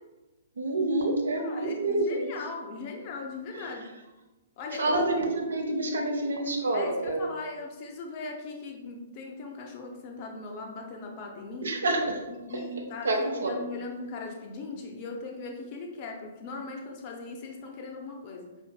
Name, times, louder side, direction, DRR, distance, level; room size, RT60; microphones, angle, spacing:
voice 1, 0.6-2.3 3.5-3.7 4.8-7.3 11.6-12.2 13.0-13.6, right 2 dB, 65° right, 1 dB, 0.6 m, -28 dB
voice 2, 1.4-3.9 4.6-5.0 6.7-11.8 12.3-18.5, left 3 dB, 35° left, 1 dB, 0.5 m, -39 dB
5.0 x 2.5 x 2.2 m, 1.1 s
figure-of-eight pair, 115°, 0 cm